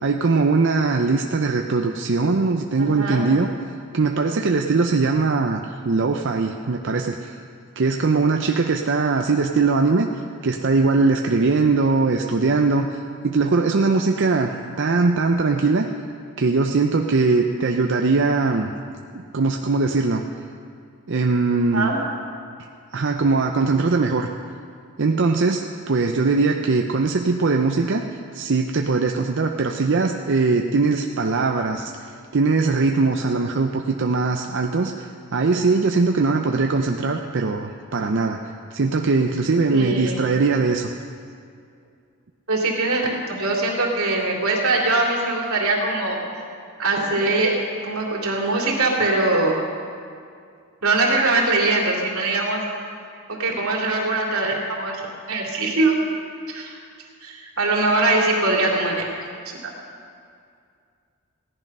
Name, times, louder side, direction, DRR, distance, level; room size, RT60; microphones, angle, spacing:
voice 1, 0.0-3.5 3.9-7.4 7.8-10.1 10.4-13.0 13.2-15.9 16.4-18.7 19.3-20.2 21.1-21.9 22.9-24.3 25.0-28.0 28.3-38.4 38.7-40.9, right 3 dB, 60° right, 3 dB, 0.6 m, -21 dB
voice 2, 2.8-3.2 21.7-22.0 39.7-40.2 42.5-46.4 46.8-49.6 50.8-52.6 53.3-55.0 55.3-56.0 56.5-56.8 57.2-59.0 59.5-59.6, right 2 dB, 85° right, -1 dB, 2.7 m, -22 dB
16.0 x 10.5 x 5.4 m, 2.3 s
head